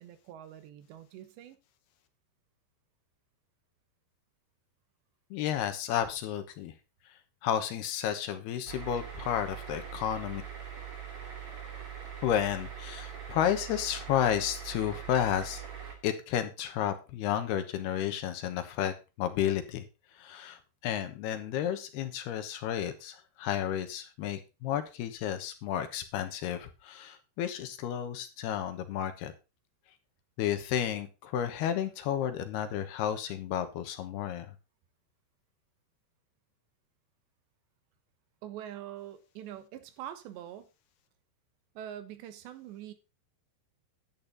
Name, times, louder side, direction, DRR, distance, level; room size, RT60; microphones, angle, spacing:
voice 1, 0.0-1.6 38.4-40.7 41.8-42.9, right 11 dB, 80° right, 3.4 m, -44 dB
voice 2, 5.3-6.7 7.4-10.4 12.2-15.6 16.0-19.8 20.1-29.3 30.4-34.5, left 10 dB, 75° left, 3.0 m, -32 dB
sound 1, 8.7-15.9, right 7 dB, 40° right, 2.8 m, -42 dB
11.0 x 8.7 x 3.9 m
omnidirectional pair, 5.0 m